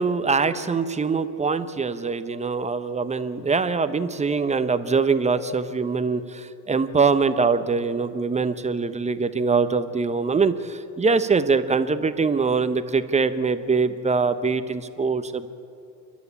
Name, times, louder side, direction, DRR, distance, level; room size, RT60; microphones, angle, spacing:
voice 1, 0.0-15.5, right 4 dB, 15° right, 11 dB, 1.0 m, -23 dB
29.5 x 11.5 x 8.5 m, 2.6 s
hypercardioid pair, 80°, 50 cm